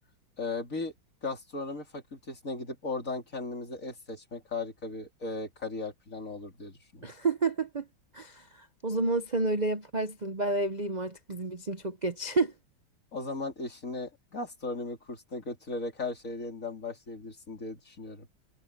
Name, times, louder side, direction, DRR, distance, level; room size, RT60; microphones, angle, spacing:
voice 1, 0.4-0.9 1.2-7.1 13.1-18.3, left 3 dB, 40° left, 4.2 m, -37 dB
voice 2, 7.0-7.9 8.1-12.5, right 3 dB, 70° right, 0.4 m, -30 dB
omnidirectional pair, 2.2 m